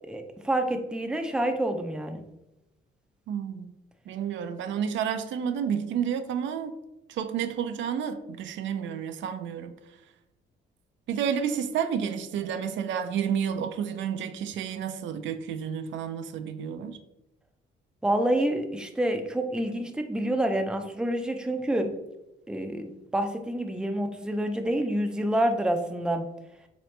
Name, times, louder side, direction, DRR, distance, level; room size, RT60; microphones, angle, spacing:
voice 1, 0.1-2.2 18.0-21.9 22.5-26.2, right 1 dB, 5° right, 0.4 m, -28 dB
voice 2, 3.3-3.7 4.1-6.8 7.1-9.7 11.1-17.0, right 8 dB, 70° right, 0.4 m, -30 dB
3.9 x 3.0 x 3.2 m
cardioid pair, 90°, 20 cm